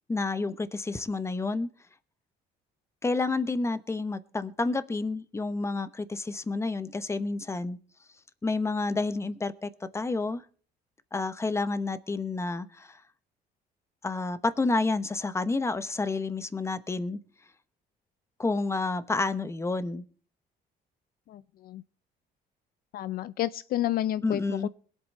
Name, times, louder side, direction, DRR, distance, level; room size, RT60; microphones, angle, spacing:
voice 1, 0.1-1.7 3.0-7.8 8.4-10.4 11.1-13.0 14.0-17.2 18.4-20.0 24.2-24.7, left 3 dB, 15° left, 0.9 m, -29 dB
voice 2, 21.3-21.8 22.9-24.7, left 13 dB, 60° left, 0.5 m, -30 dB
21.5 x 8.3 x 4.2 m
cardioid pair, 110°, 17 cm